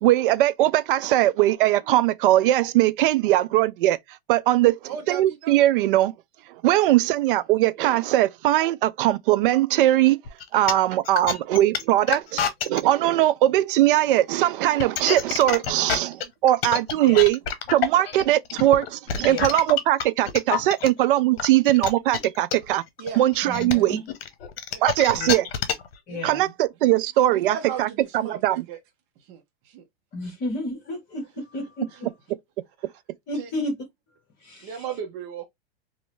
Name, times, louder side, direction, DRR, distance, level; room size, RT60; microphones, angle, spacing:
voice 1, 0.0-4.0 4.3-4.8 5.1-6.1 6.6-10.2 10.5-17.4 17.7-22.8 23.2-24.0 24.8-25.5 26.2-27.9 28.1-28.6, right 14 dB, 60° right, 0.5 m, -20 dB
voice 2, 4.9-5.7 7.3-7.4 23.0-23.2 23.7-23.9 24.7-24.9 26.1-26.2 26.8-26.9 27.3-28.8 29.2-29.8 31.9-32.1 32.8-32.9 33.3-33.5 34.6-35.4, right 8 dB, 40° right, 0.8 m, -36 dB
sound 1, 10.3-12.8 14.6-20.9 21.4-25.9, left 8 dB, 70° left, 0.9 m, -27 dB
voice 3, 23.4-24.0 25.1-25.3 26.1-26.5 30.1-32.1 33.3-33.7 34.4-34.7, left 1 dB, 35° left, 1.5 m, -32 dB
3.1 x 2.7 x 3.1 m
hypercardioid pair, 135°, 31 cm